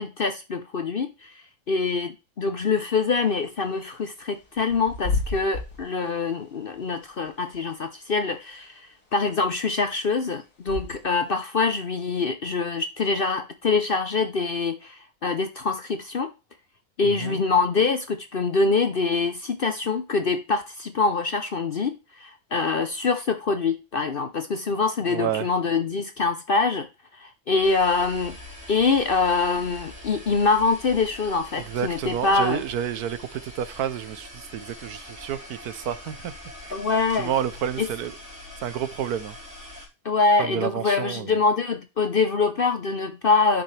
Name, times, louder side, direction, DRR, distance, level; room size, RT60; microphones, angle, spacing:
voice 1, 0.0-1.3 1.7-8.9 9.1-16.3 17.0-21.9 22.2-26.9 27.2-28.4 28.7-32.6 36.7-37.3 37.8-37.9 40.0-43.6, left 4 dB, 50° left, 0.7 m, -24 dB
Bird / Wind, 2.6-11.3, left 3 dB, 85° left, 3.4 m, -35 dB
voice 2, 17.0-17.4 25.1-25.5 31.6-36.3 36.6-36.8 37.1-38.2 38.6-39.4 40.4-41.4, right 10 dB, 75° right, 1.3 m, -30 dB
sound 1, 27.6-39.9, left 1 dB, 5° right, 4.4 m, -43 dB
9.3 x 7.3 x 3.3 m
omnidirectional pair, 1.6 m